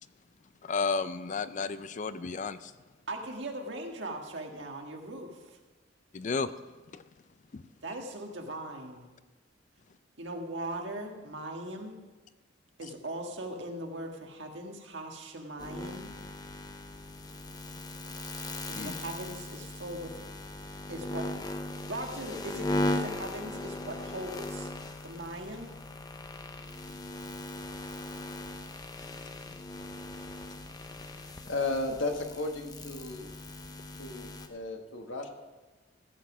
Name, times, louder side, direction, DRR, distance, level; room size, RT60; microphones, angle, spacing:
voice 1, 0.6-2.7 6.1-6.5 6.9-7.0 7.5-7.6 18.7-18.9, left 4 dB, 40° left, 14 dB, 0.4 m, -32 dB
voice 2, 3.1-5.6 7.8-9.1 10.2-12.0 12.8-16.1 18.6-20.2 20.9-21.3 21.9-24.7 25.0-25.8, right 1 dB, 65° right, 2 dB, 1.6 m, -39 dB
sound 1, 15.6-34.5, left 2 dB, 20° left, 0.8 m, -38 dB
voice 3, 31.4-33.3 34.0-35.3, left 2 dB, 85° left, 4 dB, 1.5 m, -34 dB
14.5 x 7.4 x 6.1 m, 1.2 s
head